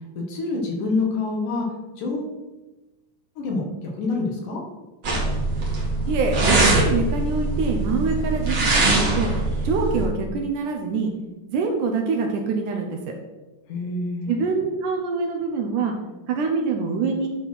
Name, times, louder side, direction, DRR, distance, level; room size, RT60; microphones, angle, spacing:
voice 1, 0.2-1.7 2.0-2.3 3.4-4.6 13.7-14.4, left 3 dB, 75° left, 0 dB, 3.1 m, -26 dB
sound 1, 5.0-10.1, right 2 dB, 40° right, 2.4 m, -22 dB
voice 2, 6.1-9.3 9.6-11.1 11.5-13.1 14.3-16.0 16.3-17.3, right 4 dB, 75° right, 3 dB, 2.3 m, -25 dB
11.0 x 4.2 x 5.7 m, 1.1 s
omnidirectional pair, 3.8 m